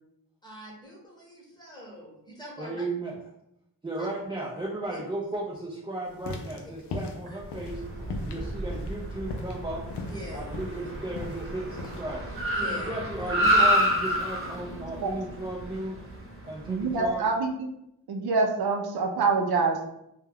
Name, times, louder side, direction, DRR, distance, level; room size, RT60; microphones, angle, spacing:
voice 1, 0.4-2.8 4.9-5.0 7.3-7.4 10.1-10.4 12.5-12.9, equal, 10° left, -4 dB, 1.0 m, -42 dB
voice 2, 2.6-3.2 3.8-7.8 8.2-9.8 10.3-16.1 16.4-17.2, right 2 dB, 15° right, -5 dB, 0.4 m, -35 dB
sound 1, 6.1-12.0, left 2 dB, 85° left, 0.5 m, -38 dB
Car, 7.5-17.1, equal, 30° right, 0.9 m, -29 dB
voice 3, 16.7-17.7 18.1-19.9, right 4 dB, 70° right, 3 dB, 0.5 m, -26 dB
2.2 x 2.2 x 3.4 m, 0.79 s
cardioid pair, 70°, 39 cm